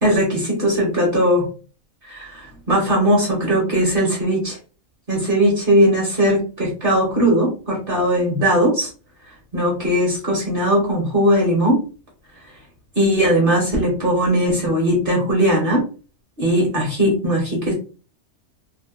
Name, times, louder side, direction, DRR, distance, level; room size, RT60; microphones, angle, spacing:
voice 1, 0.0-1.5 2.0-4.6 5.1-8.9 9.5-11.8 13.0-15.8 16.4-17.7, equal, 50° right, -2 dB, 1.0 m, -19 dB
2.7 x 2.1 x 2.3 m, 0.35 s
omnidirectional pair, 1.3 m